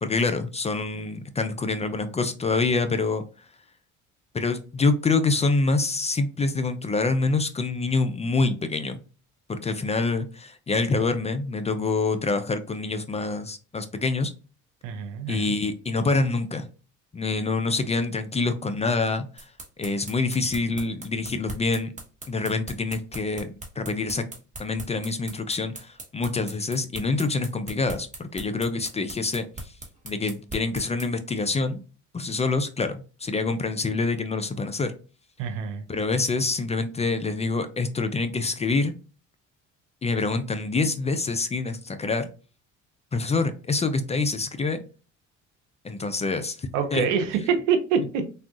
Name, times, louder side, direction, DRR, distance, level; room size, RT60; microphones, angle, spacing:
voice 1, 0.0-3.2 4.3-9.0 9.5-14.3 15.3-16.7 17.1-19.5 19.8-21.9 22.3-24.2 24.6-29.7 30.0-31.8 32.1-34.9 35.9-38.9 40.0-42.3 43.1-44.8 45.8-47.1, left 3 dB, 20° left, 0.4 m, -26 dB
voice 2, 14.8-15.5 35.4-35.9 46.7-48.3, right 6 dB, 80° right, 0.7 m, -25 dB
sound 1, 19.4-31.1, right 2 dB, 20° right, 1.1 m, -39 dB
3.6 x 2.3 x 2.4 m
hypercardioid pair, 60°, 37 cm